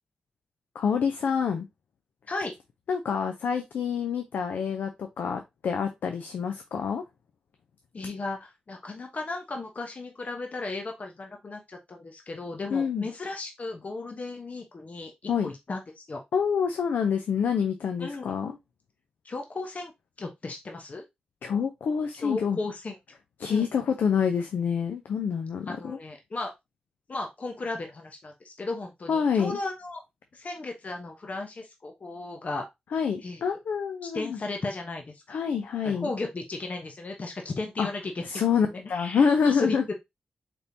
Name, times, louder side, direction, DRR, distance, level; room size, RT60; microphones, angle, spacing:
voice 1, 0.7-1.7 2.9-7.0 12.7-13.1 15.3-15.5 16.3-18.6 21.4-22.6 23.4-26.0 29.1-29.6 32.9-34.4 35.3-36.1 37.8-37.9 38.2-39.8, left 6 dB, 90° left, 6 dB, 0.5 m, -27 dB
voice 2, 7.9-16.2 18.0-18.3 19.2-19.9 20.2-21.0 22.2-22.9 23.5-23.6 25.7-26.5 27.1-30.0 30.3-32.7 33.2-33.4 34.1-35.4 35.8-38.2 38.7-39.9, left 3 dB, 55° left, 3 dB, 0.9 m, -35 dB
4.3 x 3.3 x 2.7 m, 0.20 s
cardioid pair, 50°, 3 cm